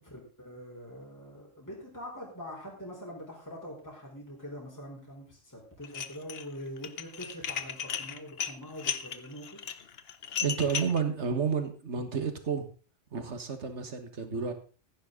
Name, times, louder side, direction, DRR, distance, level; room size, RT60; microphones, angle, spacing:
voice 1, 0.0-9.6, equal, 15° left, -3 dB, 4.4 m, -44 dB
Dishes pots and pans, 5.8-6.4 6.8-11.0, left 7 dB, 55° left, 1.0 m, -35 dB
voice 2, 10.4-12.7 13.1-14.5, right 6 dB, 65° right, 8 dB, 2.0 m, -31 dB
15.5 x 10.0 x 3.9 m, 0.36 s
omnidirectional pair, 1.3 m